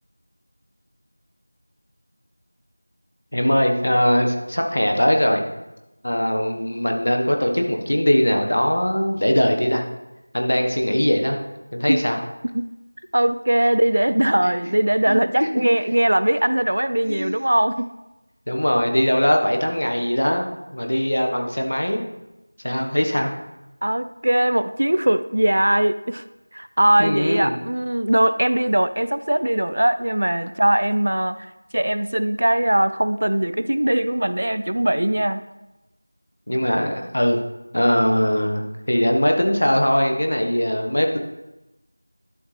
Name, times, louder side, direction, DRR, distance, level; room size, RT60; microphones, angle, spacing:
voice 1, 3.3-5.4 6.0-9.8 10.3-11.4 11.7-12.2 15.1-15.6 17.1-17.3 18.5-22.0 22.6-23.3 27.0-27.5 36.5-37.4 37.7-41.2, equal, 65° left, 3 dB, 1.3 m, -21 dB
voice 2, 13.1-17.9 23.8-26.2 26.5-31.5 31.7-35.4, right 1 dB, 50° right, 12 dB, 0.3 m, -20 dB
11.5 x 6.3 x 3.3 m, 0.99 s
figure-of-eight pair, 180°, 0 cm